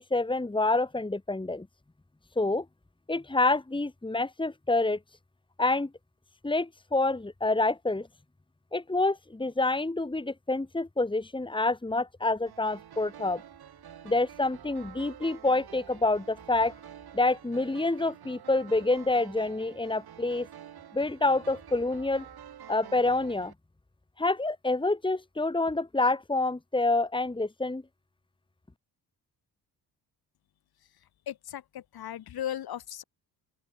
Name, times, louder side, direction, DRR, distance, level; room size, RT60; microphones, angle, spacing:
voice 1, 0.0-1.7 2.4-2.6 3.1-5.0 5.6-5.9 6.4-8.1 8.7-13.4 14.0-16.7 17.1-20.5 20.9-22.2 22.7-23.5 24.2-27.8, left 2 dB, 10° left, 2.7 m, -27 dB
sound 1, 12.5-23.5, right 10 dB, 70° right, 7.2 m, -48 dB
voice 2, 31.3-33.0, left 11 dB, 70° left, 2.0 m, -37 dB
open air
cardioid pair, 95°, 39 cm